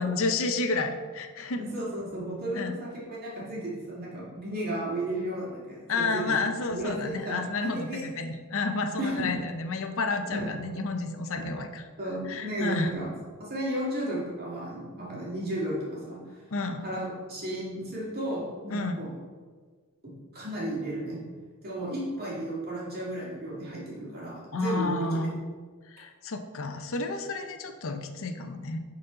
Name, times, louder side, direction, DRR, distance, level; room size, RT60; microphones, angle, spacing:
voice 1, 0.0-1.6 2.5-2.7 5.9-11.8 12.3-12.9 16.5-16.9 18.7-19.0 24.5-25.4 25.9-28.8, left 3 dB, 65° left, 7 dB, 0.7 m, -30 dB
voice 2, 1.6-6.4 6.7-7.4 7.6-8.0 9.0-9.3 10.3-10.4 11.4-11.5 12.0-13.1 13.4-16.2 16.8-19.1 20.0-21.2 21.6-25.1, right 1 dB, 45° right, -5 dB, 2.2 m, -34 dB
11.0 x 4.1 x 4.0 m, 1.5 s
head